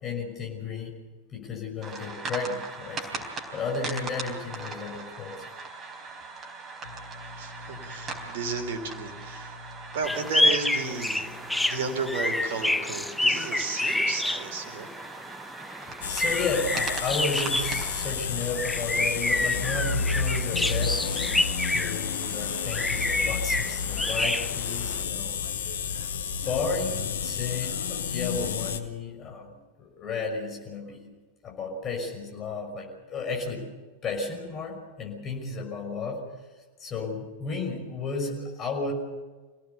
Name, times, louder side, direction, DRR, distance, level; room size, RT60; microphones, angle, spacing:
voice 1, 0.0-0.9 1.3-3.3 3.5-5.4 15.8-21.4 21.7-25.3 26.4-31.1 31.4-33.7 34.0-36.2 36.8-38.9, left 4 dB, 25° left, 2 dB, 5.8 m, -33 dB
sound 1, 1.8-18.1, right 4 dB, 20° right, 3.9 m, -40 dB
voice 2, 6.8-14.9, right 4 dB, 55° right, 6 dB, 3.4 m, -33 dB
sound 2, 10.0-25.0, left 1 dB, 5° left, 0.6 m, -29 dB
sound 3, 16.0-28.8, left 6 dB, 65° left, 1.4 m, -31 dB
26.0 x 17.5 x 6.9 m, 1.3 s
figure-of-eight pair, 90°, 0 cm